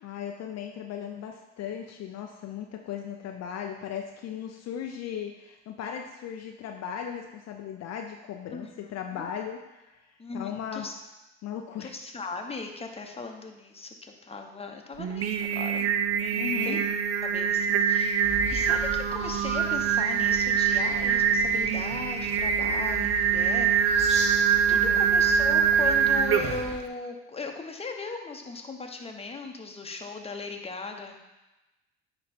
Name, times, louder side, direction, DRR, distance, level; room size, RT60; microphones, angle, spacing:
voice 1, 0.0-9.9 10.3-10.9 11.4-11.9 16.3-16.8 24.7-25.0, left 8 dB, 55° left, 3 dB, 0.7 m, -37 dB
voice 2, 8.5-9.2 10.2-11.0 11.8-15.9 16.2-16.8 17.2-24.0 24.7-31.2, left 4 dB, 20° left, 3 dB, 1.1 m, -38 dB
Singing, 15.0-26.7, right 7 dB, 45° right, 0.6 m, -24 dB
sound 1, 18.2-26.8, right 2 dB, 20° right, 1.9 m, -40 dB
9.4 x 3.2 x 4.3 m, 1.0 s
hypercardioid pair, 70°, 32 cm